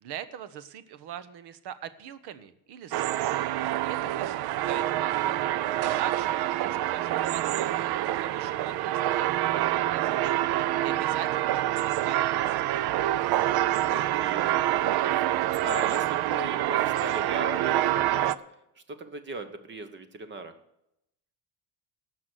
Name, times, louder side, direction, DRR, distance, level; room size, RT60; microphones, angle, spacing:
voice 1, 0.0-3.5 3.8-5.3 5.8-7.9 8.2-10.4 10.8-12.8, right 9 dB, 85° right, 14 dB, 1.2 m, -41 dB
sound 1, 2.9-18.4, right 14 dB, 65° right, 0.6 m, -26 dB
voice 2, 5.7-6.0 13.9-15.3 15.6-18.4 18.9-20.5, right 3 dB, 30° right, 10 dB, 1.1 m, -38 dB
17.5 x 6.1 x 8.0 m, 0.81 s
cardioid pair, 180°, 39 cm